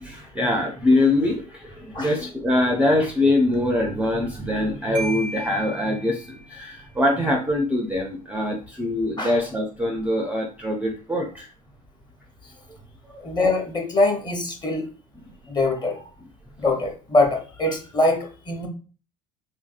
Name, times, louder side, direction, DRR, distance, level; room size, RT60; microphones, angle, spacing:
voice 1, 0.0-11.5, left 1 dB, 5° right, 2 dB, 0.4 m, -23 dB
Marimba xylophone, 4.9-6.7, right 1 dB, 85° right, 0.5 m, -35 dB
voice 2, 13.2-14.9 15.5-16.1 16.6-18.7, left 2 dB, 20° left, 3 dB, 0.8 m, -23 dB
3.1 x 2.5 x 2.4 m, 0.37 s
hypercardioid pair, 75°, 21 cm